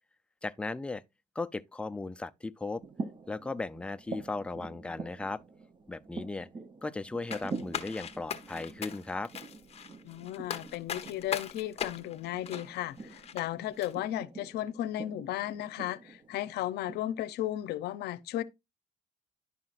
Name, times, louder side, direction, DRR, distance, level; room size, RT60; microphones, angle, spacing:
voice 1, 0.4-1.0 1.4-2.8 3.3-5.4 5.9-6.5 6.8-9.3, left 3 dB, 5° left, 0.4 m, -36 dB
sound 1, 2.8-17.0, right 3 dB, 30° right, 0.7 m, -45 dB
sound 2, 7.3-13.5 13.8-13.9, left 8 dB, 35° left, 1.0 m, -39 dB
voice 2, 10.0-18.4, left 13 dB, 75° left, 0.7 m, -35 dB
10.5 x 5.7 x 2.5 m
cardioid pair, 110°, 17 cm